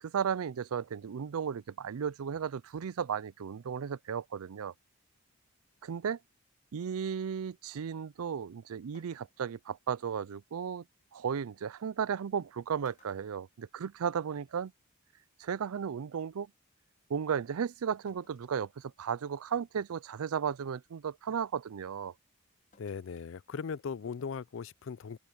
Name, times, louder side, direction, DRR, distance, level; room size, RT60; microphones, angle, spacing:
voice 1, 0.0-4.7 5.8-6.2 6.7-10.8 11.1-14.7 15.4-16.5 17.1-22.1, right 7 dB, 80° right, 0.4 m, -35 dB
sound 1, 8.9-9.6 11.2-11.3 12.3-12.5 12.8-14.2 14.6-14.7 15.9-16.0 18.1-18.6 19.1-19.2 19.8-20.1 22.7-23.3 23.7-23.8, left 4 dB, 35° left, 4.9 m, -65 dB
voice 2, 22.8-25.2, left 6 dB, 60° left, 0.4 m, -39 dB
open air
head